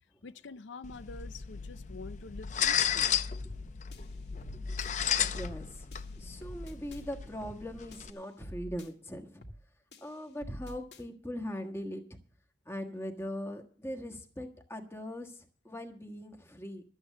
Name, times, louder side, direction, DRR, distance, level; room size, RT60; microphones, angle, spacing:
voice 1, 0.2-3.2, left 3 dB, 85° left, 0.5 m, -47 dB
sound 1, 0.8-8.1, left 8 dB, 40° left, 0.6 m, -34 dB
sound 2, 3.4-3.6 3.9-4.9 5.4-5.6 5.9-7.0 7.4-7.6 7.9-8.9 9.4-9.6 9.9-11.0, equal, 65° left, 2.0 m, -47 dB
voice 2, 4.3-5.9 6.1-9.4 10.0-12.2 12.6-16.8, equal, 15° left, 1.4 m, -41 dB
12.5 x 8.8 x 6.4 m
head